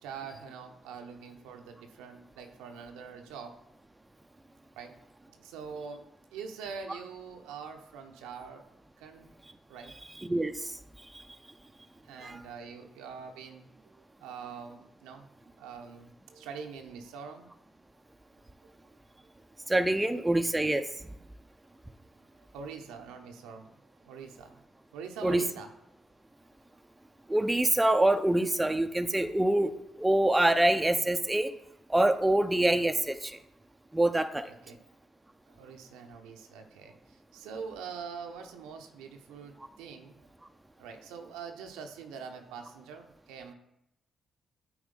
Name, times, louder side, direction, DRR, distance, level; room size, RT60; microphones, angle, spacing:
voice 1, 0.0-3.6 4.8-5.0 5.3-8.7 9.0-9.3 9.7-9.9 12.0-13.9 14.2-15.3 15.6-17.5 18.6-18.7 22.4-23.7 24.0-24.6 24.9-25.7 34.5-34.8 35.5-40.2 40.8-43.5, right 6 dB, 75° right, 4 dB, 0.7 m, -44 dB
voice 2, 19.7-20.8 25.2-25.4 27.3-29.7 30.0-31.5 31.9-33.4 33.9-34.4, right 1 dB, 15° right, 8 dB, 0.6 m, -25 dB
8.9 x 3.1 x 5.2 m, 0.85 s
hypercardioid pair, 45°, 0 cm